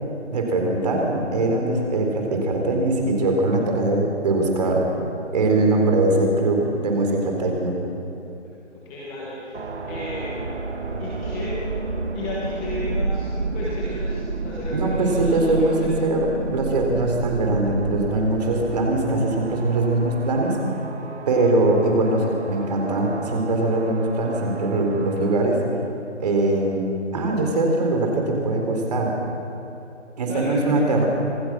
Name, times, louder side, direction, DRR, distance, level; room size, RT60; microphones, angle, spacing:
voice 1, 0.3-4.9 5.3-7.8 14.7-20.6 21.3-25.6 26.2-26.8 27.1-29.1 30.2-31.1, right 2 dB, 35° right, 1 dB, 4.0 m, -21 dB
voice 2, 8.7-9.6 9.9-10.5 11.0-11.6 12.1-16.0 30.3-30.9, left 1 dB, 5° left, -6 dB, 1.1 m, -34 dB
sound 1, 9.5-25.3, right 3 dB, 65° right, 2.1 m, -31 dB
26.5 x 18.0 x 6.2 m, 2.9 s
hypercardioid pair, 165°, 36 cm